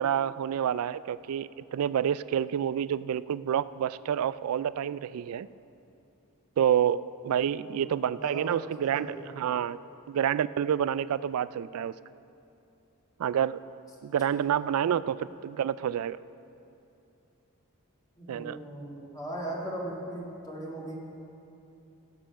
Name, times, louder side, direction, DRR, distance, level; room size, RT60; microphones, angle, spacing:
voice 1, 0.0-5.5 6.6-9.8 10.1-11.9 13.2-13.6 14.0-16.2 18.3-18.6, right 9 dB, 75° right, 17 dB, 0.3 m, -28 dB
voice 2, 7.6-8.6 8.9-9.3 18.2-21.0, right 1 dB, 15° left, -4 dB, 1.7 m, -38 dB
16.0 x 7.7 x 5.9 m, 2.8 s
head